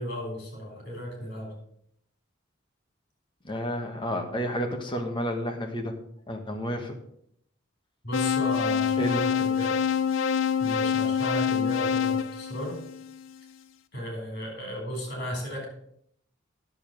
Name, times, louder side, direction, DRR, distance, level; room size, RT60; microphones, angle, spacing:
voice 1, 0.0-1.5 8.0-9.8 10.6-12.8 13.9-15.7, equal, 55° left, 1 dB, 4.8 m, -35 dB
voice 2, 3.4-5.9 6.3-7.0 9.0-9.2, equal, 25° left, 4 dB, 1.5 m, -31 dB
sound 1, 8.1-13.3, left 7 dB, 80° left, 0.6 m, -26 dB
10.0 x 7.0 x 6.3 m, 0.69 s
head